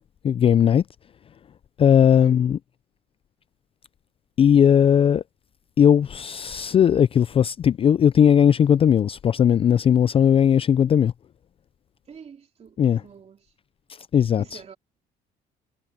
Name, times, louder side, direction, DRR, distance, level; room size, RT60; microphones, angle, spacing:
voice 1, 0.2-0.8 1.8-2.6 4.4-5.2 5.8-11.1 12.8-13.0 14.1-14.4, left 8 dB, 35° left, 0.3 m, -18 dB
voice 2, 2.0-2.4 12.1-13.5 14.4-14.8, right 7 dB, 40° right, 3.3 m, -47 dB
cardioid pair, 110°, 17 cm